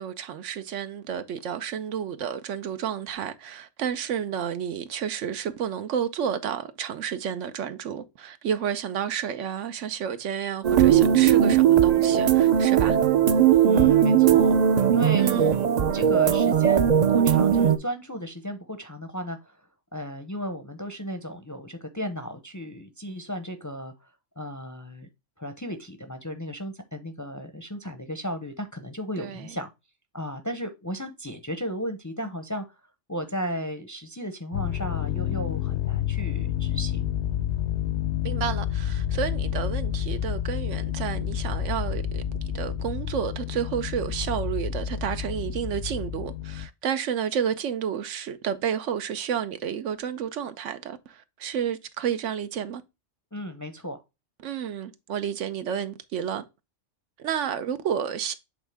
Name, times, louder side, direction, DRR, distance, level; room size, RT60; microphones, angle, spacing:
voice 1, 0.0-13.0 15.2-15.6 29.2-29.6 38.2-42.2 42.5-52.8 54.4-56.4 57.2-58.3, right 8 dB, 85° right, 1.0 m, -31 dB
sound 1, 10.6-17.8, right 9 dB, 50° right, 0.5 m, -19 dB
voice 2, 13.6-14.6 14.9-15.5 15.9-19.6 19.9-24.1 24.4-25.1 25.4-29.7 30.1-32.6 33.1-37.1 53.3-54.0, equal, 20° left, 0.5 m, -34 dB
sound 2, 34.5-46.7, left 10 dB, 70° left, 0.9 m, -29 dB
7.9 x 3.6 x 3.3 m
omnidirectional pair, 1.2 m